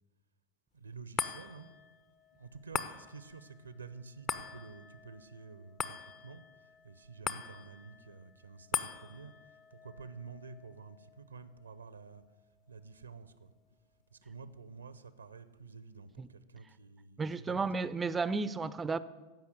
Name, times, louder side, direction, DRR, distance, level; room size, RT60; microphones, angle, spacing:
voice 1, 0.7-1.7 2.3-12.2 12.7-13.5 14.1-17.9, right 4 dB, 75° right, 0.7 m, -50 dB
sound 1, 1.2-13.8 14.2-14.3, left 7 dB, 30° left, 0.7 m, -43 dB
voice 2, 17.2-19.0, right 4 dB, 15° right, 0.5 m, -33 dB
15.0 x 5.8 x 9.1 m
figure-of-eight pair, 90°, 0 cm